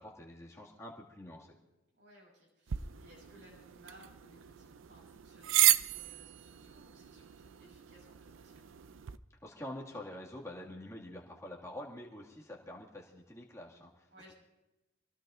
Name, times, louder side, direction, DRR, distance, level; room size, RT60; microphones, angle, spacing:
voice 1, 0.0-1.5 9.4-14.1, left 1 dB, 15° left, -3 dB, 2.1 m, -46 dB
voice 2, 2.0-8.7 14.1-14.3, equal, 60° right, -3 dB, 7.1 m, -61 dB
sound 1, 2.7-9.2, right 13 dB, 80° right, 0.5 m, -34 dB
26.5 x 18.0 x 2.6 m, 1.0 s
head